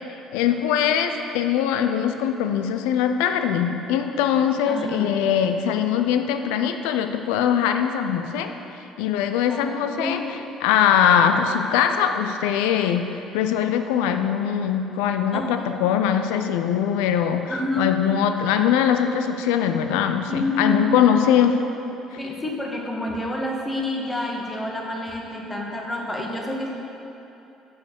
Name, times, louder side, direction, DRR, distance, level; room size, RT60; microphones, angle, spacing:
voice 1, 0.3-8.5 9.0-10.2 10.6-13.1 13.3-17.4 17.8-21.6, left 8 dB, 80° left, 7 dB, 0.4 m, -21 dB
voice 2, 4.7-5.1 9.5-9.7 10.0-10.3 15.3-15.7 17.5-18.0 20.3-21.0 22.2-26.7, left 1 dB, 20° left, -1 dB, 1.5 m, -28 dB
6.6 x 4.9 x 6.8 m, 2.9 s
hypercardioid pair, 65°, 0 cm